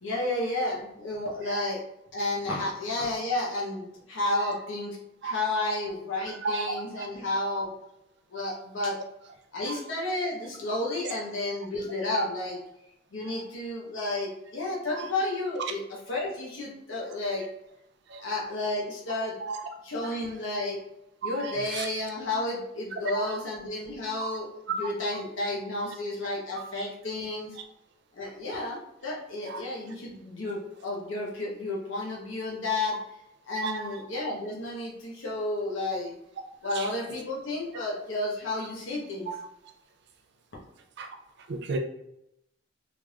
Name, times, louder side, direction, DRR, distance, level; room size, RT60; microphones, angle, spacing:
voice 1, 0.0-1.8 2.1-5.0 5.2-7.7 8.3-9.0 9.5-12.6 13.1-17.4 18.2-19.4 19.8-20.8 21.2-24.5 24.8-27.6 28.1-33.0 33.4-36.1 36.6-39.3, left 2 dB, 80° left, 0.9 m, -31 dB
voice 2, 6.4-7.1 14.9-15.0 18.1-18.2 19.5-19.7 21.3-21.9 24.2-24.3 25.8-25.9 26.6-26.7 29.5-29.6 33.6-33.9 36.8-36.9 39.3-39.4 41.0-41.1 41.5-41.8, right 4 dB, 60° right, 0.4 m, -33 dB
3.6 x 3.2 x 2.3 m
head